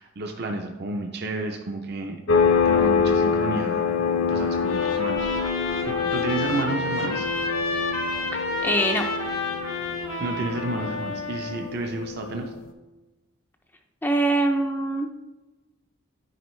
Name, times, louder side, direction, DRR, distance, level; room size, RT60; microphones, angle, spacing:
voice 1, 0.0-2.2 2.7-4.0 4.3-7.3 10.2-12.5, right 2 dB, 50° right, 3 dB, 0.5 m, -31 dB
sound 1, 2.3-12.6, left 6 dB, 65° left, 0.6 m, -26 dB
Trumpet, 4.5-11.7, left 2 dB, 85° left, 1.0 m, -30 dB
voice 2, 8.6-9.0 14.0-15.1, right 1 dB, 10° left, 3 dB, 0.3 m, -23 dB
9.3 x 4.5 x 3.1 m, 1.1 s
head